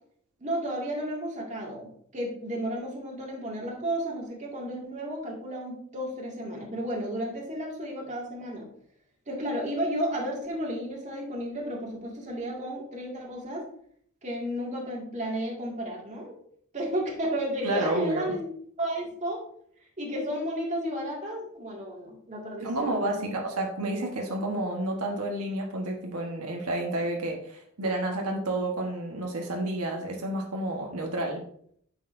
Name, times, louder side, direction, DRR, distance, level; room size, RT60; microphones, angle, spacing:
voice 1, 0.4-8.7 9.3-13.6 14.2-16.3 16.7-18.4 18.8-19.4 20.0-23.4, equal, 35° right, -2 dB, 2.1 m, -33 dB
voice 2, 17.6-18.4 22.6-31.4, right 1 dB, 90° right, 0 dB, 1.3 m, -30 dB
9.2 x 6.6 x 2.6 m, 0.64 s
head